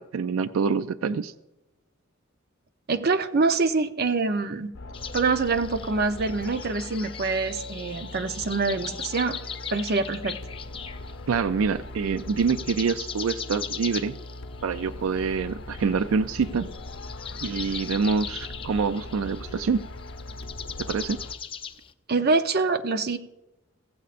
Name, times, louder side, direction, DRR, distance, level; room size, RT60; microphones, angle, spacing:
voice 1, 0.0-1.3 11.3-14.2 14.6-16.7 17.4-19.8 20.8-21.2, right 5 dB, 90° right, 13 dB, 0.4 m, -26 dB
voice 2, 2.9-4.7 5.1-9.4 9.7-10.3 22.1-23.2, right 3 dB, 50° right, 9 dB, 0.7 m, -25 dB
sound 1, 4.7-21.4, left 2 dB, 65° left, 0.7 m, -40 dB
sound 2, 4.9-11.5 11.8-21.9, left 7 dB, 25° left, 0.5 m, -40 dB
16.0 x 15.0 x 2.5 m, 0.99 s
head